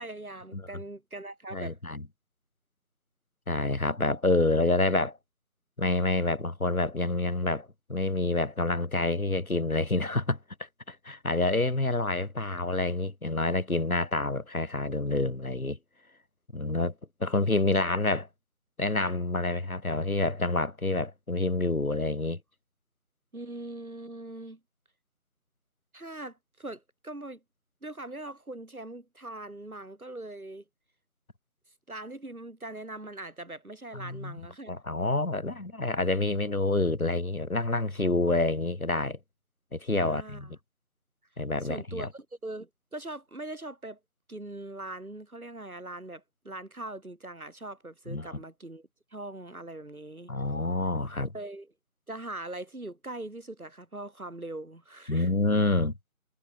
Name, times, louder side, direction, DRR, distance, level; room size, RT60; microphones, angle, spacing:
voice 1, 0.0-1.8 23.3-24.6 25.9-27.4 27.8-30.6 31.9-34.7 39.9-40.6 41.6-44.0 44.3-50.3 51.2-51.7 52.1-55.3, right 2 dB, 80° right, 5.9 m, -41 dB
voice 2, 1.5-2.0 3.5-5.2 5.8-10.4 10.9-15.8 16.5-16.9 17.2-18.3 18.8-22.4 33.9-34.4 34.7-39.2 39.7-40.6 41.4-42.1 48.1-48.4 50.3-51.3 55.1-55.9, left 2 dB, 75° left, 4.4 m, -28 dB
figure-of-eight pair, 165°, 43 cm